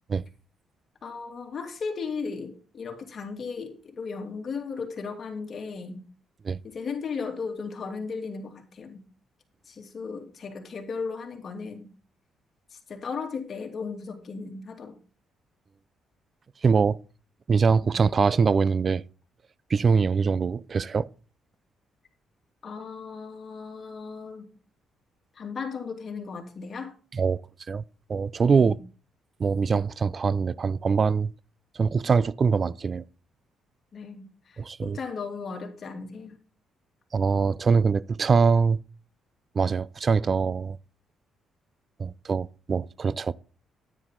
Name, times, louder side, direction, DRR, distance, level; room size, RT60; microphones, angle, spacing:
voice 1, 1.0-6.0 6.6-9.0 9.7-11.9 12.7-15.0 19.9-20.1 22.6-24.5 25.3-26.9 28.5-28.8 33.9-36.4, left 5 dB, 45° left, 2.6 m, -36 dB
voice 2, 16.6-17.0 17.5-19.0 19.7-21.1 27.1-27.4 27.7-27.8 28.1-28.8 29.4-31.3 31.8-33.0 34.6-35.0 37.1-38.8 39.5-40.8 42.0-43.3, right 5 dB, 40° right, 0.4 m, -23 dB
9.8 x 9.7 x 3.8 m
cardioid pair, 90°, 0 cm